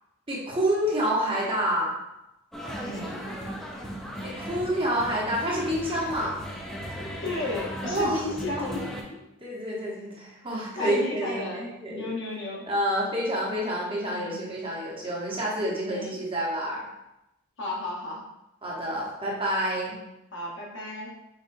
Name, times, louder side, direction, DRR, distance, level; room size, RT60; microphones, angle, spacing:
voice 1, 0.3-1.9 4.2-6.4 7.8-8.3 9.4-12.1 12.7-16.9 18.6-20.0, equal, 25° right, -4 dB, 0.8 m, -28 dB
sound 1, 2.5-9.0, equal, ahead, 0.5 m, -37 dB
voice 2, 2.8-3.3 5.1-5.2 7.2-9.2 10.7-12.7 14.1-14.4 15.9-16.1 17.6-18.2 19.7-20.0 20.3-21.2, left 2 dB, 60° left, -3 dB, 1.0 m, -34 dB
4.2 x 3.6 x 2.5 m, 0.90 s
head